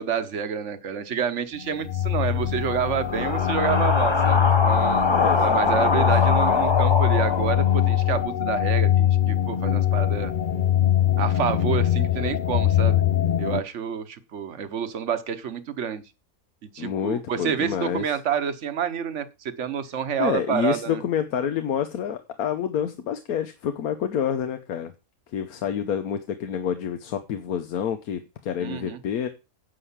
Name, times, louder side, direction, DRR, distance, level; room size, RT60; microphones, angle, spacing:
voice 1, 0.0-5.1 5.4-10.3 11.2-13.0 13.4-16.0 16.6-21.0 28.6-29.0, right 8 dB, 55° right, 1.3 m, -28 dB
sound 1, 1.6-13.6, left 11 dB, 60° left, 0.5 m, -22 dB
sound 2, 2.0-8.2, left 3 dB, 25° left, 0.8 m, -24 dB
voice 2, 5.0-6.1 16.8-18.1 20.2-24.9 25.3-29.3, left 8 dB, 85° left, 1.3 m, -28 dB
10.0 x 4.9 x 7.3 m
omnidirectional pair, 1.5 m